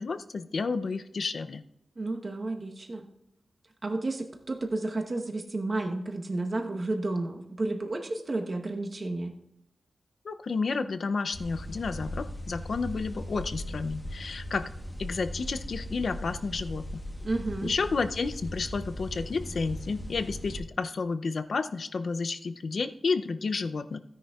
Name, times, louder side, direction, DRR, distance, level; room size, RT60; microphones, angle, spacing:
voice 1, 0.0-1.6 10.2-14.7 15.0-17.0 17.6-24.0, left 4 dB, 65° left, 10 dB, 0.5 m, -31 dB
voice 2, 2.0-3.1 3.8-9.4 17.2-17.7, right 2 dB, 40° right, 3 dB, 1.1 m, -32 dB
sound 1, 11.3-20.6, equal, 10° left, 1.1 m, -39 dB
15.5 x 10.0 x 2.4 m, 0.84 s
wide cardioid pair, 145°, 0 cm